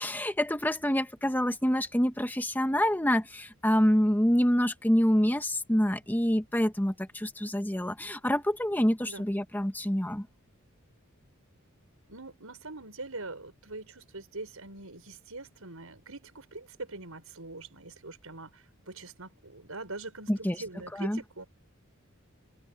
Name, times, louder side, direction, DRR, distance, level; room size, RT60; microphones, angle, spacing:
voice 1, 0.0-10.3 20.3-20.6 21.0-21.2, equal, 10° left, 1.4 m, -26 dB
voice 2, 12.1-21.5, right 2 dB, 85° right, 5.9 m, -43 dB
head